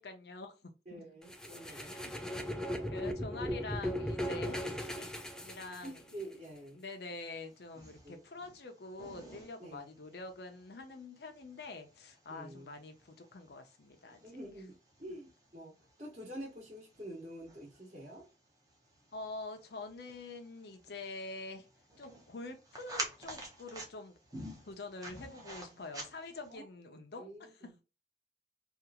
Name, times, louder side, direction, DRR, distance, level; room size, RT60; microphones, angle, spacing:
voice 1, 0.0-1.0 1.6-2.1 2.9-5.2 5.4-6.2 6.7-14.2 19.1-21.7 22.0-24.2 24.6-27.7, left 3 dB, 65° left, 0.6 m, -46 dB
voice 2, 0.9-3.0 4.6-4.8 5.8-6.8 8.0-8.2 9.6-9.9 12.3-12.7 14.2-15.7 16.0-18.2 25.3-25.6 26.5-26.6 27.2-27.8, right 1 dB, 40° right, 1.2 m, -48 dB
sound 1, 1.3-6.2, equal, 5° left, 0.3 m, -38 dB
sound 2, 7.1-26.6, right 1 dB, 20° right, 0.8 m, -50 dB
2.9 x 2.5 x 2.3 m
head